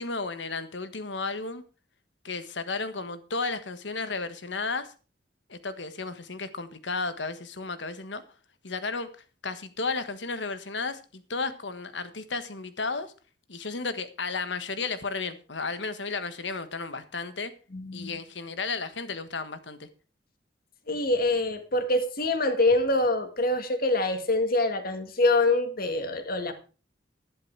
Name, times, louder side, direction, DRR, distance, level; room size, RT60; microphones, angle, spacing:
voice 1, 0.0-1.6 2.2-4.9 5.5-8.2 8.6-9.1 9.4-13.1 13.5-17.5 17.9-19.9, left 4 dB, 70° left, 1.4 m, -33 dB
voice 2, 17.7-18.2 20.9-26.5, left 2 dB, 55° left, 1.9 m, -25 dB
11.5 x 11.0 x 4.7 m
head